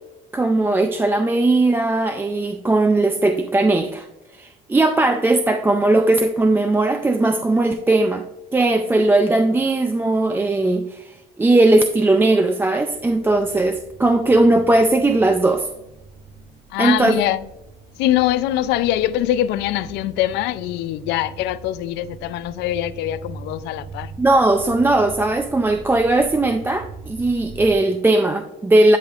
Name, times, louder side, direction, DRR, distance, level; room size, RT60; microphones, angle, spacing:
voice 1, 0.3-4.1 4.3-8.3 8.5-15.7 16.8-17.2 24.2-29.0, right 2 dB, 10° right, 0.4 m, -18 dB
sound 1, 12.9-27.7, right 4 dB, 85° right, 1.1 m, -41 dB
voice 2, 16.7-17.4 18.0-24.1, left 13 dB, 85° left, 0.4 m, -23 dB
10.5 x 5.2 x 2.4 m
cardioid pair, 110°, 17 cm